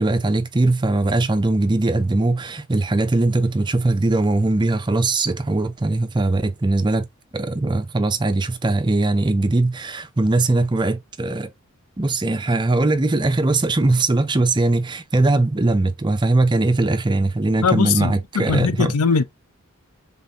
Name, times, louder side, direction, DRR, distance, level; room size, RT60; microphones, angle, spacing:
voice 1, 0.0-7.1 7.3-11.5 12.0-19.0, right 2 dB, 20° right, 0.5 m, -20 dB
voice 2, 17.6-19.2, left 5 dB, 90° left, 0.6 m, -20 dB
3.9 x 3.7 x 2.7 m
head